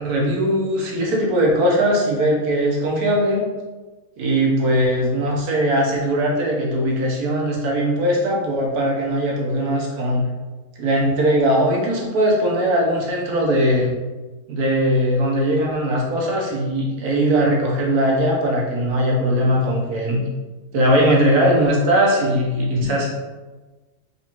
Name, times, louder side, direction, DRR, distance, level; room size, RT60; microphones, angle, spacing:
voice 1, 0.0-3.5 4.2-10.3 10.8-13.9 14.5-20.2 20.7-23.1, equal, 70° right, -2 dB, 1.3 m, -20 dB
4.0 x 2.5 x 2.9 m, 1.2 s
omnidirectional pair, 1.7 m